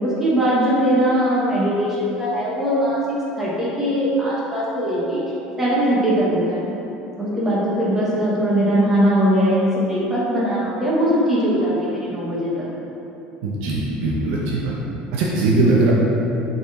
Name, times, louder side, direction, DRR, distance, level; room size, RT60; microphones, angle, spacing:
voice 1, 0.0-1.9 2.2-3.0 3.4-5.2 5.6-6.6 7.2-11.7 12.0-12.7, equal, 10° right, -8 dB, 1.2 m, -20 dB
voice 2, 13.4-14.7 15.1-15.9, right 2 dB, 75° right, -4 dB, 1.0 m, -20 dB
6.7 x 4.2 x 4.7 m, 2.9 s
cardioid pair, 165°, 3 cm